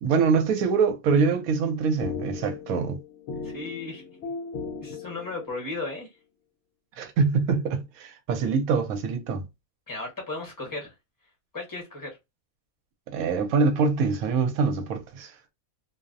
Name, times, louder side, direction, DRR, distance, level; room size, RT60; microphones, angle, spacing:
voice 1, 0.0-3.0 7.0-9.4 13.1-15.5, right 5 dB, 80° right, 1.0 m, -24 dB
sound 1, 1.5-5.8, left 4 dB, 70° left, 0.9 m, -38 dB
voice 2, 3.4-4.3 4.8-6.1 9.9-10.9 11.5-12.1, left 3 dB, 15° left, 0.9 m, -35 dB
2.5 x 2.0 x 2.4 m
omnidirectional pair, 1.5 m